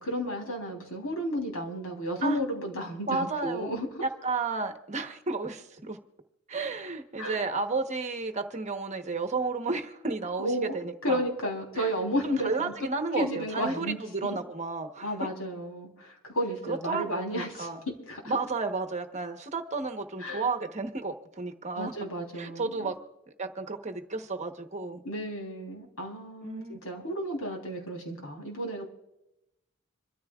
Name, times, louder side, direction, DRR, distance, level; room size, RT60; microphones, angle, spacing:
voice 1, 0.0-3.9 7.2-7.4 10.4-10.8 11.0-12.7 13.2-14.4 15.0-17.7 18.1-18.4 20.2-20.5 21.8-22.9 25.0-28.8, equal, 90° left, 2 dB, 3.4 m, -33 dB
voice 2, 3.1-3.7 4.0-6.0 6.5-11.2 11.8-11.9 12.2-15.3 16.7-17.8 18.3-21.9 22.3-23.0 23.4-25.0 26.4-26.8, right 3 dB, 35° right, 5 dB, 1.1 m, -32 dB
26.5 x 13.5 x 2.4 m, 0.90 s
head